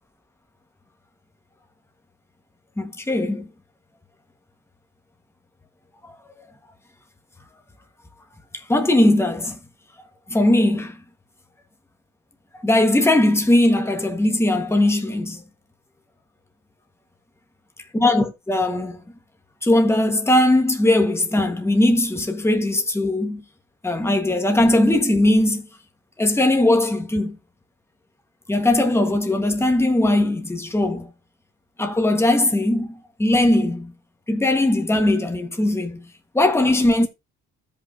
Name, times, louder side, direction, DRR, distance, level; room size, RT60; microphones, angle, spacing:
voice 1, 2.8-3.5 6.0-6.1 8.7-9.6 10.3-11.0 12.6-15.4 17.9-19.0 19.6-23.4 23.8-25.7 26.2-27.4 28.5-31.1 31.8-33.9 34.3-36.0 36.3-37.1, left 1 dB, 10° left, 1.5 m, -19 dB
14.0 x 5.6 x 2.7 m
cardioid pair, 90°, 30 cm